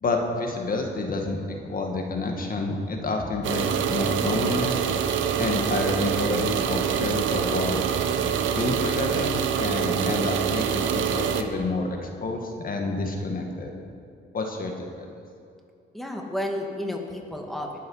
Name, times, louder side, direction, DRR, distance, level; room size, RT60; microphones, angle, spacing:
voice 1, 0.0-4.9 5.4-7.8 8.6-13.7 14.3-15.1, left 3 dB, 45° left, 2 dB, 1.8 m, -29 dB
sound 1, 3.4-11.4, right 8 dB, 75° right, 0.9 m, -25 dB
voice 2, 15.9-17.8, left 1 dB, ahead, 1 dB, 1.9 m, -31 dB
20.0 x 7.7 x 5.6 m, 2.4 s
cardioid pair, 90°, 20 cm